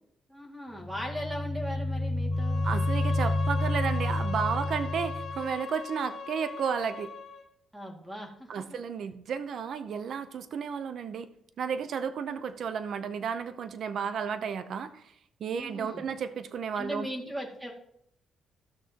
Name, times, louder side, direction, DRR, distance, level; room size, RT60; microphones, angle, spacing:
voice 1, 0.3-2.6 7.7-8.6 15.5-16.1 16.7-17.7, equal, 10° right, 0 dB, 2.2 m, -38 dB
sound 1, 0.8-5.5, left 1 dB, 15° left, 0.8 m, -29 dB
Bowed string instrument, 2.3-7.5, left 4 dB, 65° left, 1.6 m, -40 dB
voice 2, 2.6-7.1 8.5-11.3 11.6-15.0 15.4-17.1, right 6 dB, 60° right, 11 dB, 0.7 m, -33 dB
15.0 x 6.3 x 3.0 m, 0.73 s
cardioid pair, 90°, 0 cm